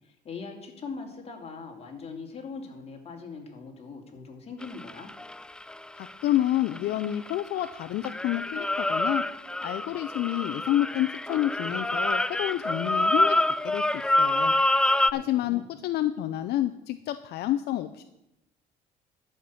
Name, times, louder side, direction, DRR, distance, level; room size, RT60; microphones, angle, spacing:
voice 1, 0.0-5.1 15.0-15.6, left 4 dB, 35° left, 1 dB, 2.8 m, -41 dB
sound 1, 4.6-7.7 8.0-15.1, left 1 dB, 5° left, 0.3 m, -26 dB
voice 2, 6.0-9.2 9.6-14.5 15.1-18.0, left 13 dB, 75° left, 10 dB, 0.6 m, -29 dB
11.5 x 5.9 x 8.4 m, 0.86 s
cardioid pair, 110°, 17 cm